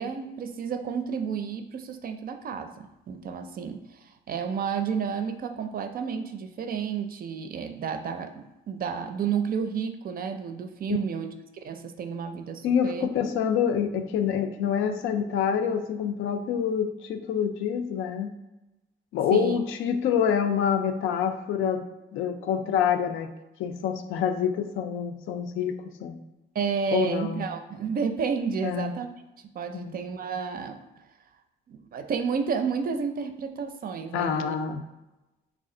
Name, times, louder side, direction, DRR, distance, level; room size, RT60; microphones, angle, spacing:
voice 1, 0.0-3.8 4.3-13.1 19.3-19.6 26.5-29.1 29.5-30.8 31.7-34.6, right 6 dB, 50° right, 8 dB, 0.4 m, -31 dB
voice 2, 12.6-18.3 19.1-21.8 22.1-23.3 23.6-26.2 26.9-27.5 28.6-28.9 29.7-30.0 34.1-34.8, left 8 dB, 85° left, 7 dB, 0.4 m, -26 dB
3.2 x 2.4 x 3.7 m, 0.99 s
cardioid pair, 90°, 20 cm